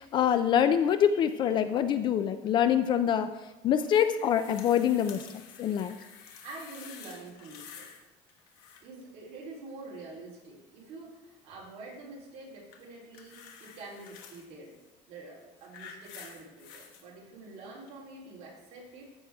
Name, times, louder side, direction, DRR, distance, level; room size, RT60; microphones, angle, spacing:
voice 1, 0.0-3.3 3.6-6.0, left 9 dB, 35° left, 11 dB, 0.3 m, -25 dB
sound 1, 3.8-8.0 8.3-9.0 12.7-14.5 15.3-17.0 17.9-18.0, left 7 dB, 85° left, 1.5 m, -49 dB
voice 2, 6.4-7.9 8.8-14.7 15.1-19.0, right 3 dB, 50° right, -4 dB, 3.4 m, -46 dB
14.0 x 6.2 x 3.5 m, 1.0 s
cardioid pair, 180°, 14 cm